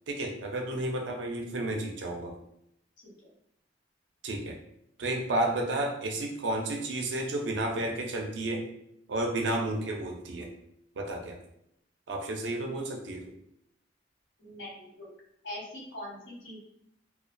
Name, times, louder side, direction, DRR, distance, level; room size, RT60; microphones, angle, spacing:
voice 1, 0.1-2.4 4.2-4.6 5.0-8.6 9.1-10.5 11.0-11.4 12.1-13.3, right 1 dB, 80° right, 2 dB, 0.4 m, -32 dB
voice 2, 14.4-15.1 15.4-16.6, left 1 dB, 80° left, -5 dB, 1.1 m, -42 dB
2.3 x 2.1 x 2.5 m, 0.76 s
head